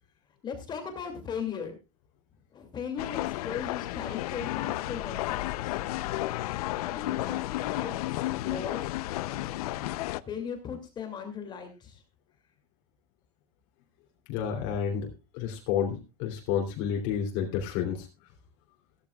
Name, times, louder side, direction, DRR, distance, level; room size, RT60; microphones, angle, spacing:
voice 1, 0.4-1.7 2.5-5.8 6.8-7.9 8.4-8.8 10.3-12.0, left 7 dB, 25° left, 5 dB, 2.5 m, -37 dB
sound 1, 3.0-10.2, left 16 dB, 85° left, 0.7 m, -32 dB
voice 2, 14.3-15.1 15.3-18.1, left 8 dB, 55° left, 1 dB, 3.1 m, -30 dB
16.0 x 13.5 x 2.4 m, 0.28 s
supercardioid pair, 160°, 19 cm